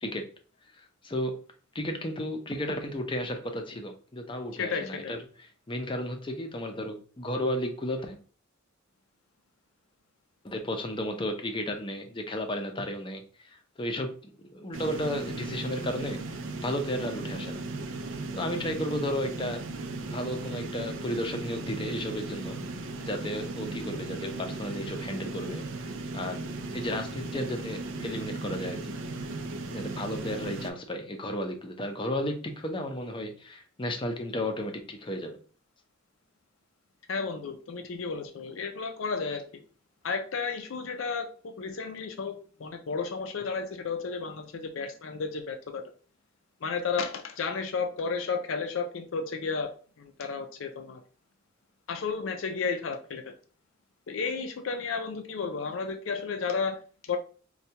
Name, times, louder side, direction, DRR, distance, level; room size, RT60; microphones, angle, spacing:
voice 1, 0.7-1.4 1.7-5.2 5.7-8.2 10.4-16.2 16.6-17.6 18.3-19.6 20.0-22.6 23.0-25.6 26.1-26.4 26.7-28.9 29.7-35.4, left 1 dB, 25° left, 5 dB, 0.5 m, -33 dB
voice 2, 4.6-5.2 37.1-39.6 40.0-45.8 46.6-49.7 50.0-51.0 51.9-53.3 54.1-57.2, left 5 dB, 80° left, 6 dB, 0.5 m, -33 dB
sound 1, 14.7-30.7, right 2 dB, 70° right, 0.4 m, -37 dB
4.4 x 2.3 x 2.8 m, 0.40 s
head